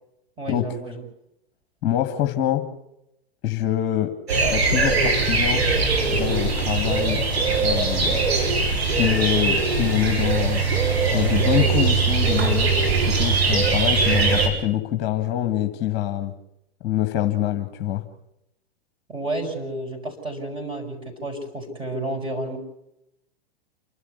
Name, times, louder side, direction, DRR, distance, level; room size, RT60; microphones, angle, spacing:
voice 1, 0.4-1.0 19.1-22.6, right 1 dB, 15° right, 3 dB, 7.0 m, -31 dB
voice 2, 1.8-2.6 3.4-5.6 6.1-7.2 7.6-8.2 8.9-10.8 11.1-16.3 16.8-18.0, left 12 dB, 35° left, 7 dB, 1.9 m, -25 dB
sound 1, 4.3-14.5, right 4 dB, 80° right, 6.0 m, -21 dB
28.5 x 12.5 x 8.3 m, 0.83 s
hypercardioid pair, 110°, 31 cm